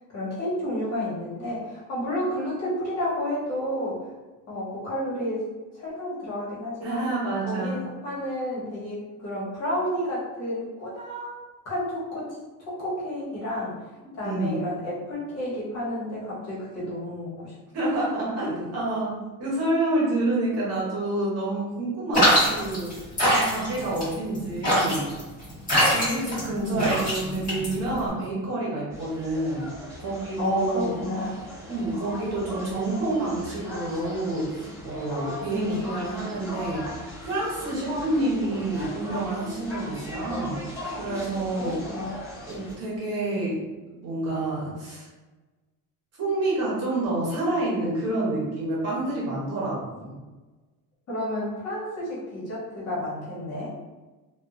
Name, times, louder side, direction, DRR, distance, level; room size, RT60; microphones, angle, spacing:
voice 1, 0.1-4.0 4.5-5.5 5.7-7.1 7.4-11.3 11.6-13.8 14.2-17.5 18.5-18.7 26.5-26.9 30.4-31.4 35.5-35.8 41.5-42.2 51.1-53.7, left 1 dB, 45° left, -8 dB, 1.2 m, -31 dB
voice 2, 6.8-7.7 14.2-14.6 17.7-22.9 23.3-25.0 25.9-29.6 30.0-31.0 31.7-40.6 41.0-41.7 42.5-43.6 43.9-45.1 46.2-50.2, right 2 dB, 45° right, -6 dB, 1.0 m, -28 dB
sound 1, 22.1-28.1, equal, 25° left, 1.4 m, -23 dB
sound 2, 28.9-42.7, left 1 dB, 5° left, 1.2 m, -39 dB
2.8 x 2.4 x 2.5 m, 1.2 s
cardioid pair, 175°, 35 cm